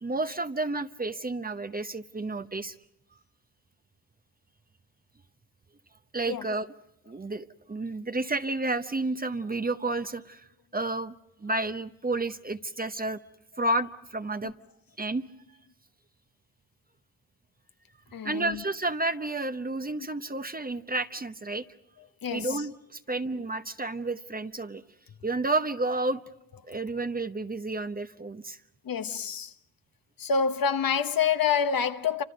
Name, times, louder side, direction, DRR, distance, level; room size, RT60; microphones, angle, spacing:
voice 1, 0.0-2.8 6.1-6.7 7.1-10.4 10.7-11.1 11.4-13.2 13.6-14.5 15.0-15.2 18.2-21.6 22.3-24.8 25.2-26.2 26.7-28.6, right 2 dB, 20° right, 0.9 m, -31 dB
voice 2, 18.1-18.6 22.2-22.6 28.9-29.5 30.2-32.2, left 6 dB, 50° left, 1.1 m, -27 dB
28.5 x 26.0 x 5.2 m
supercardioid pair, 65°, 45 cm